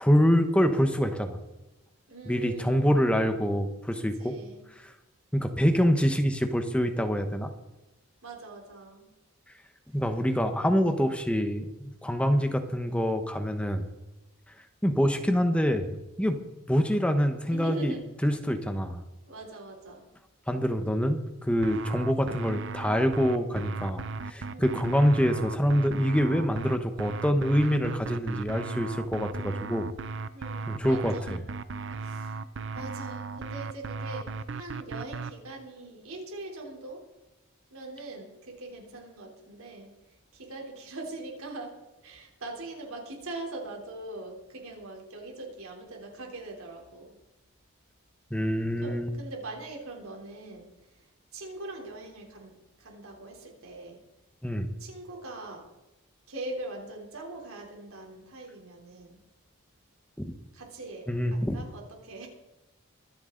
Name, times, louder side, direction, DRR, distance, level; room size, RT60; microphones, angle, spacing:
voice 1, 0.0-1.4 2.3-4.4 4.8-4.9 5.3-7.5 9.9-13.8 14.8-16.4 16.7-17.9 18.2-19.0 20.5-29.9 30.7-31.4 48.3-49.1 54.4-54.7 60.2-60.3 61.1-61.6, equal, 5° left, 7 dB, 1.0 m, -26 dB
voice 2, 2.1-3.0 4.2-4.7 8.2-9.0 17.5-18.0 19.3-20.1 24.5-24.9 30.3-31.4 32.0-32.4 32.7-37.0 37.7-39.9 40.3-41.7 42.0-47.2 48.8-50.7 51.3-52.5 52.8-54.0 54.8-55.6 56.3-59.2 60.5-61.0 61.3-62.3, right 2 dB, 80° right, 0 dB, 3.5 m, -41 dB
sound 1, 21.6-35.3, right 4 dB, 55° right, 0.6 m, -36 dB
24.0 x 8.1 x 3.9 m, 1.0 s
head